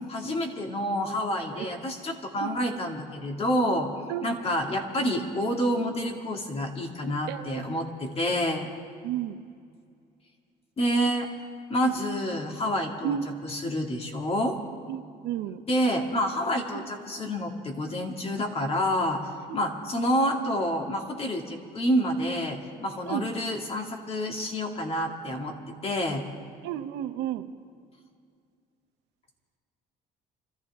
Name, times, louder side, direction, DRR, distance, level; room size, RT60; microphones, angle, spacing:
voice 1, 0.1-3.9 4.2-8.7 10.8-11.3 11.7-13.2 13.4-14.6 15.7-19.2 19.5-25.5 25.8-26.2, equal, 35° left, 1 dB, 2.3 m, -28 dB
voice 2, 7.3-7.6 9.0-9.4 13.0-13.3 14.9-15.6 16.7-16.8 19.5-19.6 23.1-23.3 26.6-27.5, right 11 dB, 85° right, 9 dB, 0.8 m, -32 dB
26.0 x 14.5 x 3.6 m, 2.2 s
cardioid pair, 110°, 17 cm